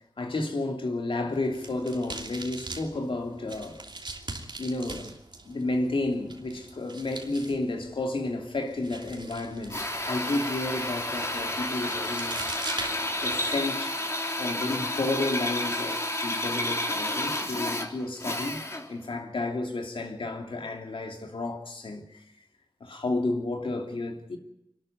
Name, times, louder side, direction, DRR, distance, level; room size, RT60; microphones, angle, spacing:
voice 1, 0.2-3.8 4.6-5.2 5.4-12.5 13.2-14.0 14.4-18.6 18.9-22.2 22.8-24.4, left 2 dB, 85° left, 3.0 m, -31 dB
sound 1, 1.3-13.6, right 3 dB, 60° right, 2.9 m, -42 dB
Drill, 9.7-19.0, left 1 dB, 35° left, 3.5 m, -31 dB
24.5 x 12.0 x 9.5 m
cardioid pair, 50°, 9 cm